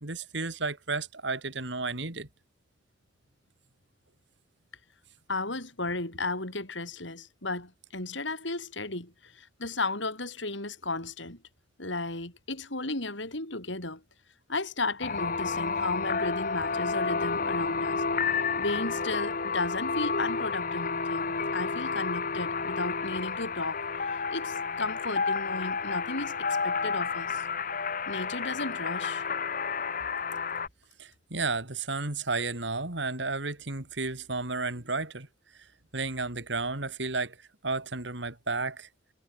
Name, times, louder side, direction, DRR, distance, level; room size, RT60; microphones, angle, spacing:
voice 1, 0.0-2.3 31.0-35.3 35.9-37.4 37.6-38.9, right 3 dB, 65° right, 3.0 m, -32 dB
voice 2, 5.3-11.4 11.8-14.0 14.5-18.0 18.6-26.4 26.6-27.5 28.1-29.3, left 2 dB, 70° left, 7.2 m, -34 dB
sound 1, 15.0-30.7, left 5 dB, 45° left, 1.7 m, -31 dB
head